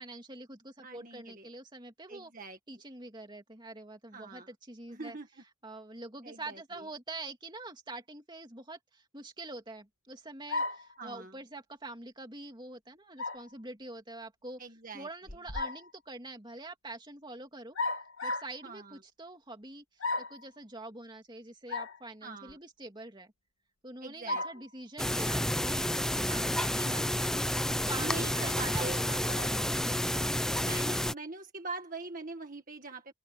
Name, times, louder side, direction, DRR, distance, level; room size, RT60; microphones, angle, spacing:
voice 1, 0.0-2.3 2.7-5.2 5.6-14.6 14.9-17.8 18.2-19.8 20.2-23.3 23.8-27.3 27.9-29.5, right 2 dB, 20° right, 2.6 m, -45 dB
voice 2, 0.8-1.5 2.1-2.6 4.1-4.5 4.9-5.4 6.2-6.9 11.0-11.4 14.6-15.1 18.6-19.0 22.2-22.6 24.0-24.4 26.3-27.1 28.0-30.1 30.6-33.1, right 3 dB, 40° right, 1.8 m, -43 dB
sound 1, 10.5-10.9 13.2-13.5 15.3-15.9 17.8-18.6 20.0-20.4 21.7-22.0 22.5-22.6 24.3-24.6, left 2 dB, 75° left, 2.3 m, -34 dB
sound 2, 25.0-31.1, left 1 dB, 5° left, 0.6 m, -30 dB
open air
head